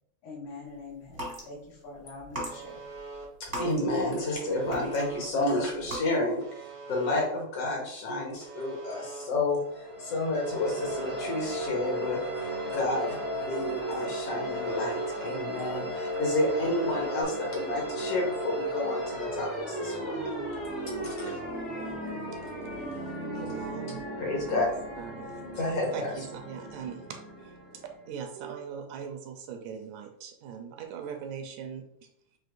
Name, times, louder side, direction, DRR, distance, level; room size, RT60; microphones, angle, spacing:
voice 1, 0.2-2.8, left 3 dB, 80° left, -3 dB, 2.8 m, -44 dB
sound 1, 1.0-1.5 2.2-4.3 4.7-5.3 5.7-6.0, right 1 dB, 35° right, 0.6 m, -38 dB
Alarm, 2.4-3.3 4.4-5.3 6.4-7.3 8.4-9.3 10.4-11.3 12.4-13.3 14.4-15.3 16.4-17.2, right 4 dB, 65° right, 0.9 m, -43 dB
voice 2, 3.6-9.6 10.0-20.2 21.0-21.4 24.2-24.7 25.5-26.1, left 2 dB, 60° left, -2 dB, 1.9 m, -30 dB
sound 2, 9.6-28.2, right 1 dB, 45° left, 0.6 m, -35 dB
voice 3, 23.3-24.1 25.0-25.3 25.9-27.2 28.1-31.9, right 7 dB, 80° right, 4 dB, 2.0 m, -40 dB
7.7 x 2.8 x 2.5 m, 0.74 s
omnidirectional pair, 3.5 m